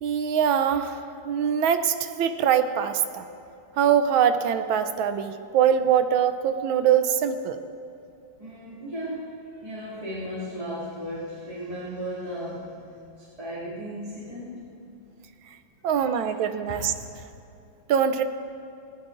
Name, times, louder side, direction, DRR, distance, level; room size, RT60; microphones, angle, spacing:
voice 1, 0.0-3.3 3.8-7.6 15.8-16.9 17.9-18.2, right 8 dB, 75° right, 9 dB, 1.4 m, -23 dB
voice 2, 8.4-9.3 9.6-12.8 13.2-14.6 15.8-16.2 16.7-16.9, equal, 15° right, -9 dB, 2.3 m, -35 dB
19.5 x 17.0 x 2.5 m, 2.6 s
omnidirectional pair, 2.3 m